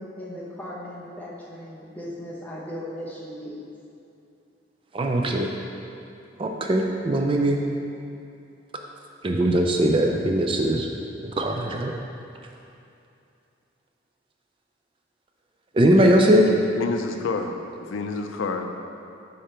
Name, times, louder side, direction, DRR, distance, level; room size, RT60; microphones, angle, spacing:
voice 1, 0.0-3.7, equal, 10° left, -6 dB, 0.9 m, -37 dB
voice 2, 4.9-5.5 6.4-7.6 9.2-10.9 11.2-11.9 15.7-16.4, right 1 dB, 25° right, 2 dB, 0.3 m, -20 dB
voice 3, 16.4-18.7, left 4 dB, 85° left, 5 dB, 0.4 m, -29 dB
5.4 x 5.1 x 4.3 m, 2.6 s
head